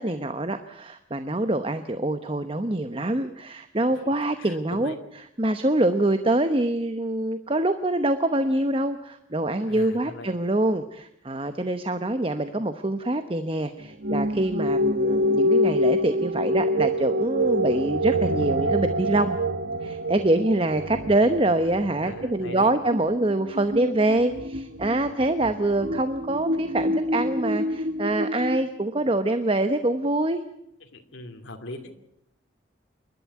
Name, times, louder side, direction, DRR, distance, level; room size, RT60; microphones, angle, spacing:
voice 1, 0.0-5.0 5.4-19.4 19.8-30.4, right 1 dB, 30° right, 9 dB, 0.9 m, -25 dB
voice 2, 4.0-5.0 9.7-10.3 22.0-22.7 30.8-32.0, left 2 dB, 85° left, 4 dB, 2.6 m, -40 dB
sound 1, 14.0-28.6, equal, 60° right, 1.1 m, -26 dB
28.5 x 12.0 x 9.6 m, 0.78 s
head